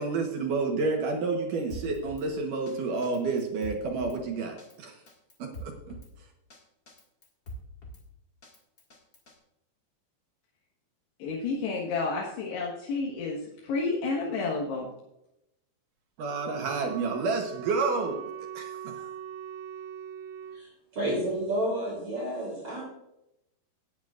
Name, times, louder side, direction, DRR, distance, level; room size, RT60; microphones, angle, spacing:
voice 1, 0.0-4.9 5.4-6.0 16.2-18.2 18.5-19.1, right 4 dB, 65° right, 2 dB, 2.4 m, -30 dB
Drum kit, 1.7-2.3 2.7-2.8 3.0-4.2 4.6-4.7 5.1-6.1 6.5-6.6 6.9-8.0 8.4-9.3, right 1 dB, 40° left, 1.3 m, -43 dB
voice 2, 11.2-14.9, left 3 dB, 90° left, -4 dB, 3.7 m, -30 dB
Wind instrument woodwind instrument, 16.3-20.7, right 9 dB, 80° right, 2.9 m, -41 dB
voice 3, 20.5-22.8, right 1 dB, 35° right, -4 dB, 4.0 m, -31 dB
18.0 x 9.3 x 2.5 m, 0.84 s
omnidirectional pair, 4.6 m